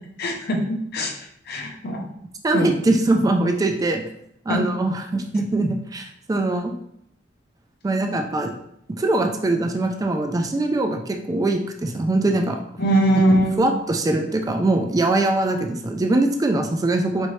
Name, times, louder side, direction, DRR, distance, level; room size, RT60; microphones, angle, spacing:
voice 1, 0.2-1.1 1.5-2.0 2.5-2.7 4.5-4.6 12.8-13.7, right 1 dB, 55° left, 2 dB, 0.7 m, -21 dB
voice 2, 2.4-4.0 4.5-6.7 7.8-8.5 9.0-12.6 13.3-17.3, right 2 dB, 20° right, 4 dB, 0.3 m, -22 dB
4.3 x 2.7 x 3.1 m, 0.74 s
head